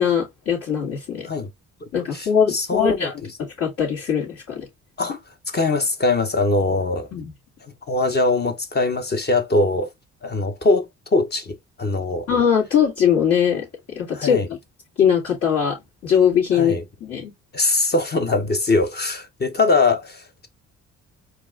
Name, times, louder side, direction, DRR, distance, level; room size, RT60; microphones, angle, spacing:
voice 1, 0.0-1.3 1.9-4.7 7.1-7.3 12.3-13.6 14.0-14.4 15.0-15.8 16.0-17.3, left 8 dB, 60° left, 2.1 m, -21 dB
voice 2, 1.8-3.1 5.0-5.2 5.5-7.1 7.9-9.9 10.2-12.3 14.1-14.5 16.5-16.8 17.5-20.5, left 3 dB, 35° left, 0.8 m, -22 dB
4.5 x 2.6 x 3.6 m
cardioid pair, 90°, 30 cm